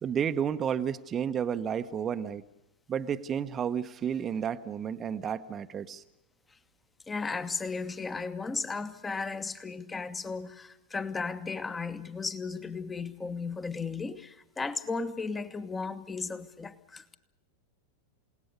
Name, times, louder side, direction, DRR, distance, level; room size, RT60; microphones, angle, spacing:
voice 1, 0.0-2.4 2.9-6.0, right 8 dB, 25° right, 1.0 m, -31 dB
voice 2, 7.1-17.1, left 4 dB, 15° left, 1.4 m, -35 dB
29.0 x 18.5 x 6.7 m
figure-of-eight pair, 90°, 0 cm